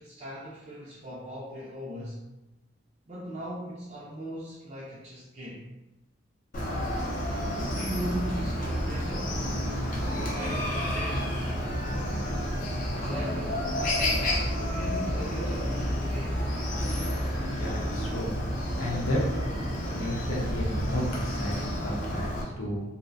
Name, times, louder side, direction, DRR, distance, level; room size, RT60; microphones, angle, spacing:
voice 1, 0.0-2.2 3.1-5.7 7.5-9.5 10.1-11.5 12.9-16.8, right 1 dB, 35° right, -7 dB, 0.3 m, -39 dB
Chicken rooster, 6.5-22.4, equal, 40° left, 0.4 m, -30 dB
sound 1, 7.7-19.7, equal, 75° right, 0.7 m, -44 dB
voice 2, 17.5-18.3 18.8-19.2 19.9-22.8, left 1 dB, 85° left, -3 dB, 0.7 m, -33 dB
2.5 x 2.0 x 2.5 m, 1.0 s
head